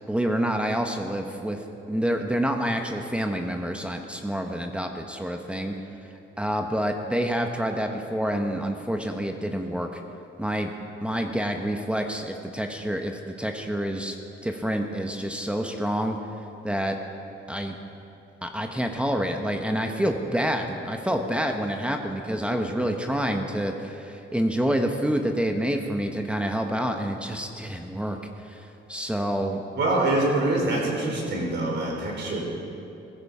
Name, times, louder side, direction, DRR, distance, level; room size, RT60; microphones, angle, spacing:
voice 1, 0.1-5.7 6.4-10.0 10.4-10.7 11.0-14.2 14.4-16.2 16.6-17.0 17.5-17.7 18.4-29.6, equal, 5° right, 4 dB, 1.1 m, -28 dB
voice 2, 29.7-32.4, right 2 dB, 60° right, -1 dB, 4.3 m, -25 dB
17.5 x 14.5 x 4.9 m, 2.7 s
cardioid pair, 90°, 20 cm